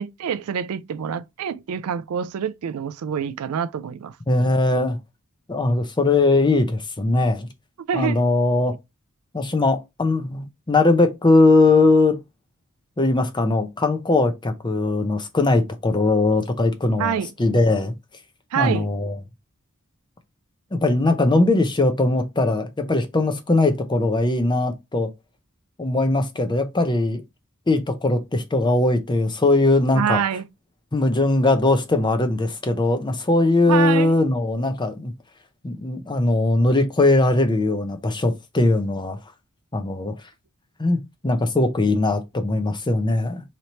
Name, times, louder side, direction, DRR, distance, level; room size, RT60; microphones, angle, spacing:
voice 1, 0.0-4.2 7.9-8.2 8.7-8.8 17.0-17.3 18.5-18.9 29.9-30.5 33.7-34.1, right 7 dB, 80° right, 0.4 m, -26 dB
voice 2, 4.3-5.0 5.5-7.5 7.9-8.7 9.3-12.2 13.0-17.9 18.6-19.1 20.7-25.1 25.8-27.2 27.7-30.2 30.9-35.1 35.6-39.2 39.7-40.1 40.8-43.4, left 2 dB, 20° left, 0.6 m, -20 dB
3.2 x 2.9 x 4.0 m
head